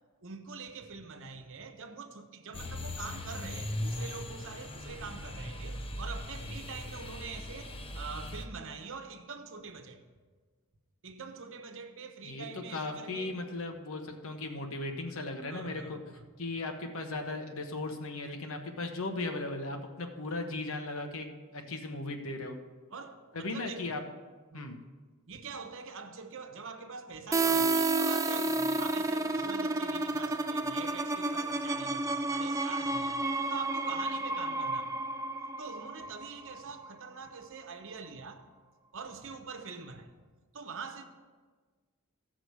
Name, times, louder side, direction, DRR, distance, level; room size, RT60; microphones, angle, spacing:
voice 1, 0.2-10.0 11.0-13.4 15.5-16.2 18.7-18.8 21.6-21.8 22.9-24.0 24.5-24.8 25.3-33.2 33.5-35.0 35.6-38.4 38.9-40.1 40.5-41.0, right 5 dB, 65° right, 1.0 m, -44 dB
sound 1, 2.5-8.5, left 1 dB, 25° left, 0.8 m, -39 dB
voice 2, 12.7-16.0 16.4-21.3 21.5-22.6 23.3-24.0 24.5-24.8, left 2 dB, 70° left, 1.1 m, -37 dB
sound 2, 27.3-36.9, right 2 dB, 15° right, 0.5 m, -31 dB
15.5 x 6.2 x 4.8 m
head